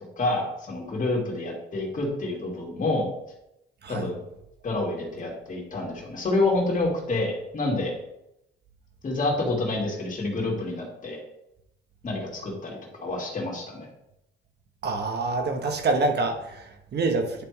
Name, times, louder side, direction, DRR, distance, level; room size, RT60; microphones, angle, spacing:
voice 1, 0.2-3.1 3.9-4.2 4.6-8.0 9.0-11.2 12.0-13.9, left 2 dB, 40° left, -2 dB, 2.6 m, -28 dB
voice 2, 14.8-17.4, right 3 dB, 55° right, 5 dB, 1.2 m, -26 dB
10.0 x 3.5 x 4.7 m, 0.84 s
cardioid pair, 90°, 20 cm